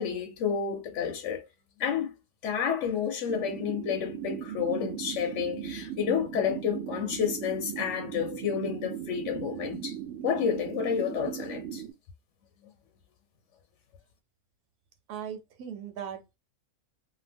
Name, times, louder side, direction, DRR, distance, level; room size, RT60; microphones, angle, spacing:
voice 1, 0.0-1.5 1.8-2.1 2.4-10.0 10.2-11.8, left 7 dB, 65° left, 0.8 m, -30 dB
sound 1, 3.3-11.9, right 10 dB, 65° right, 0.8 m, -38 dB
voice 2, 15.1-16.4, right 8 dB, 90° right, 1.2 m, -39 dB
2.7 x 2.1 x 3.3 m
omnidirectional pair, 1.5 m